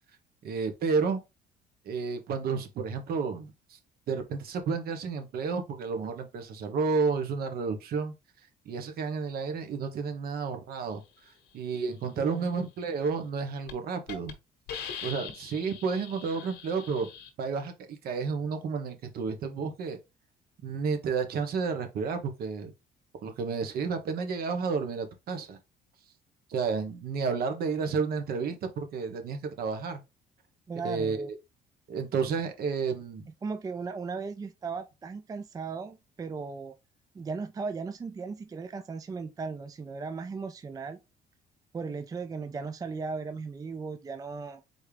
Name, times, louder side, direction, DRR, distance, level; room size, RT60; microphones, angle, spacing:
voice 1, 0.4-1.2 1.8-3.8 4.1-8.1 8.7-11.0 11.5-14.3 15.0-17.1 17.4-17.7 18.0-20.0 20.6-22.7 23.2-25.6 26.5-30.0 30.8-31.3 31.9-33.3, right 5 dB, 65° right, 1.2 m, -31 dB
voice 2, 12.2-12.5 30.7-31.3 33.4-36.7 37.1-41.0 41.7-44.6, right 4 dB, 20° right, 0.4 m, -37 dB
Hiss, 13.1-13.3 13.7-13.8 14.1-14.3 14.7-17.3, left 8 dB, 85° left, 1.1 m, -41 dB
4.3 x 3.6 x 3.3 m
cardioid pair, 110°, 17 cm